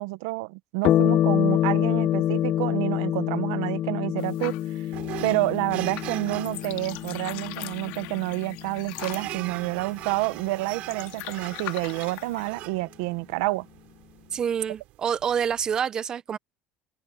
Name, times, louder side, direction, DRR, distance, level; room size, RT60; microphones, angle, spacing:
voice 1, 0.0-4.9 5.2-13.7, right 21 dB, 90° right, 0.9 m, -29 dB
sound 1, 0.8-9.7, left 12 dB, 45° left, 0.7 m, -26 dB
sound 2, 4.2-12.5, left 20 dB, 75° left, 1.8 m, -42 dB
sound 3, 4.9-15.8, right 17 dB, 55° right, 3.7 m, -41 dB
voice 2, 14.3-16.4, right 8 dB, 25° right, 0.6 m, -27 dB
cardioid pair, 155°, 3 cm